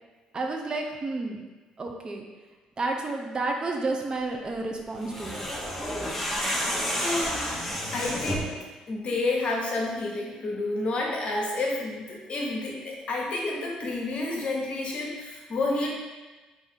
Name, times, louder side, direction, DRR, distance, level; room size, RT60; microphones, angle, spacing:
voice 1, 0.3-1.4 1.8-2.3 2.8-5.5, right 3 dB, 35° right, 2 dB, 0.5 m, -31 dB
sound 1, 5.0-8.6, equal, 5° left, 0.8 m, -30 dB
voice 2, 6.9-8.5 8.9-15.9, left 2 dB, 50° left, -1 dB, 0.9 m, -30 dB
3.4 x 2.6 x 3.7 m, 1.2 s
supercardioid pair, 70°, 2 cm